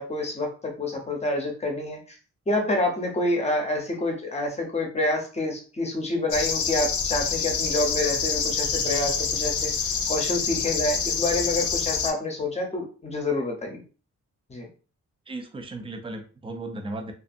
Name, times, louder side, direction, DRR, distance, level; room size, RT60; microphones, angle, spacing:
voice 1, 0.0-2.0 2.5-9.7 10.1-13.8 14.5-14.7, left 2 dB, 20° left, 2 dB, 0.7 m, -27 dB
sound 1, 6.3-12.1, left 6 dB, 70° left, 0.6 m, -26 dB
voice 2, 15.3-17.1, right 2 dB, 20° right, 4 dB, 0.4 m, -36 dB
2.6 x 2.4 x 2.5 m, 0.37 s
wide cardioid pair, 150°, 30 cm